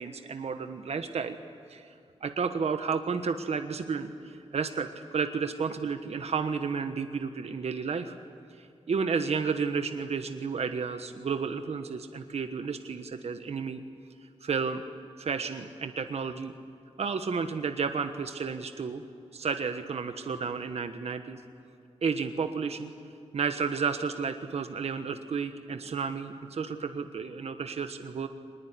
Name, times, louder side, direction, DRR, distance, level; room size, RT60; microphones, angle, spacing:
voice 1, 0.0-1.4 1.7-1.9 2.2-8.1 8.5-13.8 14.2-14.8 15.2-16.5 17.0-19.0 19.3-21.4 22.0-22.9 23.3-28.3, right 5 dB, 65° right, 8 dB, 1.3 m, -32 dB
24.0 x 20.5 x 9.7 m, 2.6 s
wide cardioid pair, 110°, 12 cm